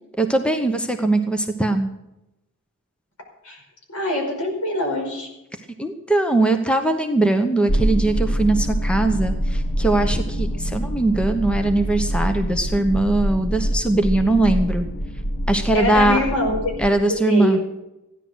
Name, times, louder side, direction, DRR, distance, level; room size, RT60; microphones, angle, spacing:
voice 1, 0.2-1.9 5.8-14.9 15.5-16.2 16.8-17.6, right 2 dB, 5° left, 7 dB, 1.0 m, -20 dB
voice 2, 3.9-5.3 15.7-16.7 17.1-17.6, left 1 dB, 90° left, 2 dB, 5.0 m, -24 dB
sound 1, 7.7-16.9, equal, 55° left, 1.2 m, -25 dB
15.5 x 10.5 x 6.3 m, 0.91 s
head